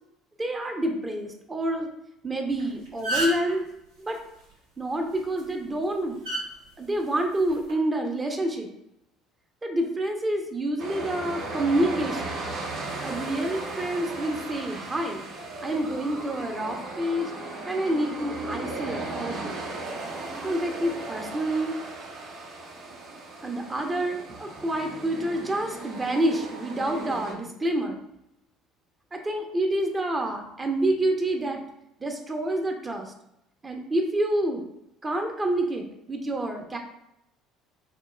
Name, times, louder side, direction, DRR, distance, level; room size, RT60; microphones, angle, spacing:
voice 1, 0.4-1.9 2.2-3.6 4.0-4.2 4.8-6.2 6.8-8.7 9.6-12.4 13.0-15.2 15.6-17.3 17.7-19.6 20.4-21.8 23.4-28.0 29.1-31.6 32.0-33.1 33.6-34.6 35.0-36.8, right 1 dB, 25° right, 4 dB, 0.7 m, -28 dB
sound 1, 2.5-2.6 2.9-3.5 5.2-5.4 6.2-6.4 7.5-7.7, right 1 dB, 85° right, 1.2 m, -28 dB
sound 2, 10.8-27.3, right 2 dB, 55° right, 0.8 m, -36 dB
5.8 x 2.3 x 2.2 m, 0.81 s
hypercardioid pair, 60°, 0 cm